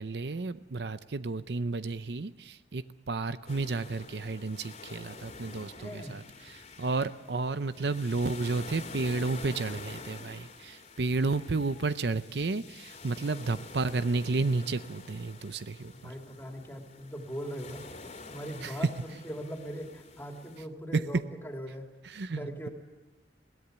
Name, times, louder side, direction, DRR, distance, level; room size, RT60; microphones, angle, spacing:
voice 1, 0.0-16.1 18.6-18.8 20.9-21.0 22.0-22.7, right 3 dB, 70° right, 13 dB, 0.7 m, -32 dB
sound 1, 3.5-20.6, left 3 dB, 40° left, 2.6 m, -47 dB
voice 2, 5.8-6.2 15.9-17.8 18.3-18.9 19.2-21.9 22.3-22.7, equal, 15° left, 2 dB, 3.0 m, -40 dB
21.5 x 17.0 x 8.1 m, 1.2 s
head